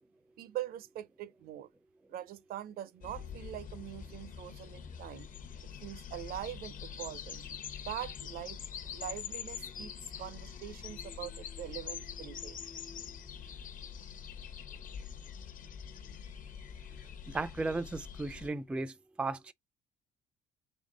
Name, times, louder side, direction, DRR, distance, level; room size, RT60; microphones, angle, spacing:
voice 1, 0.4-1.7 2.1-5.3 5.8-7.4 7.9-12.6, right 12 dB, 60° right, 0.5 m, -43 dB
sound 1, 3.0-18.5, left 7 dB, 50° left, 0.8 m, -44 dB
voice 2, 17.3-19.5, right 3 dB, 5° right, 0.3 m, -35 dB
3.6 x 3.4 x 3.7 m
cardioid pair, 110°, 17 cm